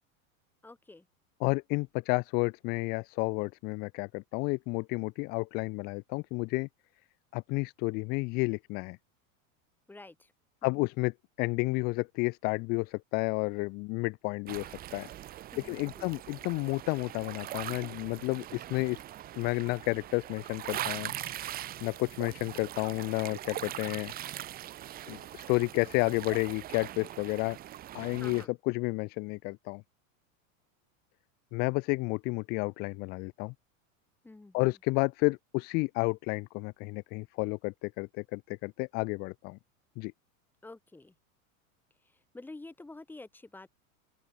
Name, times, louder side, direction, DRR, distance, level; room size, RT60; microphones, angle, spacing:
voice 1, 0.6-1.1 9.9-10.3 10.6-10.8 15.5-16.1 28.1-28.5 34.2-34.7 40.6-41.1 42.3-43.7, left 2 dB, 5° left, 2.3 m, -49 dB
voice 2, 1.4-6.7 7.3-9.0 10.6-15.1 15.6-19.0 19.4-21.1 21.8-24.1 25.1-27.6 27.9-29.8 31.5-33.5 34.5-39.6 40.0-40.1, left 27 dB, 25° left, 0.5 m, -31 dB
sound 1, 14.5-28.5, right 13 dB, 20° right, 1.2 m, -41 dB
open air
supercardioid pair, 165°, 41 cm